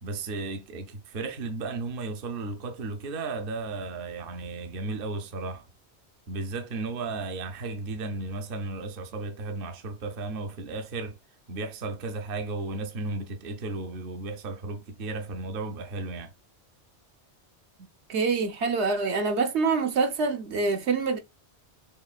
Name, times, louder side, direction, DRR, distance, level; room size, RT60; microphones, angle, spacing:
voice 1, 0.0-5.6 6.3-11.2 11.5-16.3, right 3 dB, 55° right, 0.9 m, -34 dB
voice 2, 18.1-21.2, right 4 dB, 75° right, 1.2 m, -25 dB
7.0 x 3.0 x 2.4 m
omnidirectional pair, 1.2 m